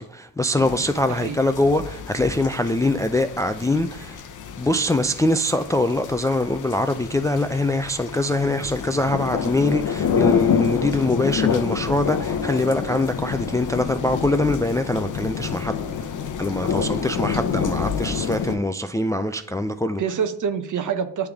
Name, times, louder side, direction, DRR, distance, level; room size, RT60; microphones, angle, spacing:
voice 1, 0.0-4.2 4.6-15.8 16.4-20.0, left 1 dB, 10° left, 0.3 m, -23 dB
sound 1, 0.6-18.6, left 7 dB, 50° left, 0.8 m, -28 dB
voice 2, 16.6-17.0 20.0-21.3, right 7 dB, 50° right, 0.8 m, -27 dB
9.6 x 3.4 x 3.5 m
supercardioid pair, 55°, 38 cm